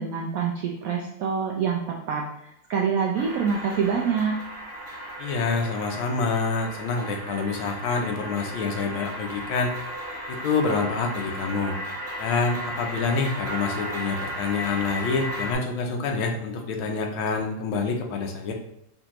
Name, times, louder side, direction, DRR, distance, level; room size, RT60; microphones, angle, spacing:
voice 1, 0.0-4.3, right 6 dB, 75° right, -1 dB, 0.7 m, -26 dB
sound 1, 3.1-15.5, equal, 30° right, 1.1 m, -35 dB
voice 2, 5.2-9.7 10.3-11.7 12.2-18.5, left 4 dB, 85° left, 2 dB, 1.5 m, -27 dB
4.4 x 3.8 x 2.9 m, 0.84 s
omnidirectional pair, 2.1 m